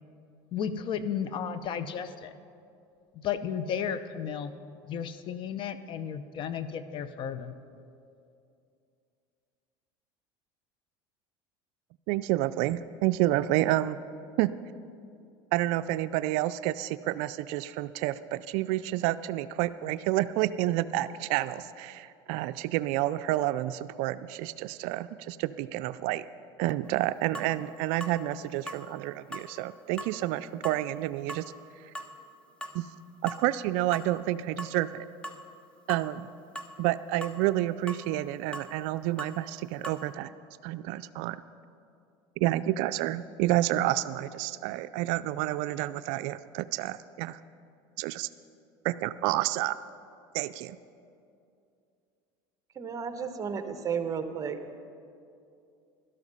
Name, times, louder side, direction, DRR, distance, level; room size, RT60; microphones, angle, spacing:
voice 1, 0.5-2.3 3.1-4.5 4.8-7.5, left 8 dB, 45° left, 13 dB, 0.7 m, -33 dB
voice 2, 12.1-14.0 14.4-14.5 15.5-26.3 26.6-31.4 32.7-32.9 33.2-35.1 35.9-36.3 36.8-40.3 40.6-41.4 42.4-47.4 48.0-48.3 48.8-49.8 50.3-50.8, right 15 dB, 70° right, 13 dB, 0.4 m, -29 dB
sound 1, 26.8-26.9 27.3-27.5 28.0-28.2 28.7-28.8 29.3-29.5 30.0-30.2 30.6-30.8 31.3-31.5 31.9-32.1 32.6-32.8 33.3-33.4 33.9-34.1 34.6-34.8 35.2-35.4 35.9-36.1 36.5-36.7 37.2-37.4 37.9-38.0 38.5-38.7 39.2-39.4 39.8-40.0, right 1 dB, 10° left, 1.0 m, -39 dB
voice 3, 52.7-54.6, right 6 dB, 30° right, 8 dB, 1.0 m, -33 dB
12.5 x 12.0 x 5.5 m, 2.5 s
supercardioid pair, 115°, 12 cm